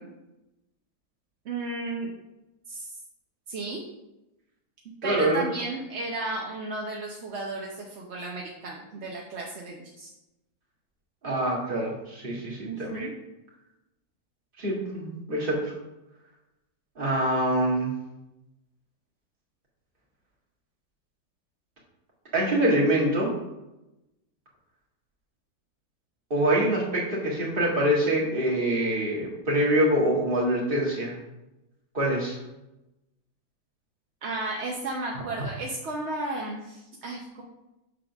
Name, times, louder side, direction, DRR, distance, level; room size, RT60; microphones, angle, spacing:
voice 1, 1.4-2.1 2.7-3.0 3.5-3.8 5.0-10.1 12.6-13.1 34.2-37.4, right 2 dB, 55° right, -1 dB, 0.9 m, -34 dB
voice 2, 5.0-5.4 11.2-13.1 14.6-15.7 17.0-17.9 22.3-23.3 26.3-31.1 31.9-32.4, right 1 dB, 30° right, -4 dB, 1.9 m, -25 dB
6.5 x 3.7 x 5.9 m, 0.96 s
omnidirectional pair, 1.8 m